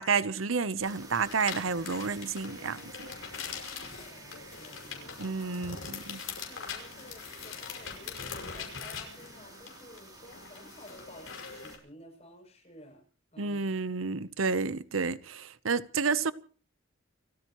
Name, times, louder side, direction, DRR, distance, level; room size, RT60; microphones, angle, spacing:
voice 1, 0.0-3.1 5.2-6.2 13.4-16.3, right 5 dB, 85° right, 0.9 m, -30 dB
sound 1, 0.8-11.8, left 6 dB, 80° left, 6.0 m, -43 dB
sound 2, 0.8-11.8, right 3 dB, 20° right, 3.1 m, -52 dB
voice 2, 3.4-5.7 6.3-13.0 13.3-13.6, left 1 dB, 30° left, 7.7 m, -53 dB
29.5 x 14.5 x 3.1 m
head